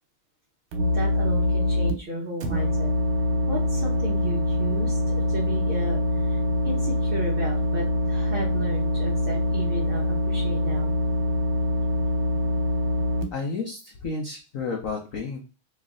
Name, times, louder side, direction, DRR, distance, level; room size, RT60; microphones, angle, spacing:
sound 1, 0.7-1.9 2.4-13.2, left 1 dB, 85° right, 1.7 m, -24 dB
voice 1, 0.9-2.9 3.5-10.9, right 1 dB, 65° right, -3 dB, 0.5 m, -34 dB
voice 2, 13.3-15.4, left 4 dB, 80° left, 1 dB, 0.7 m, -31 dB
3.2 x 3.2 x 3.7 m, 0.33 s
omnidirectional pair, 2.4 m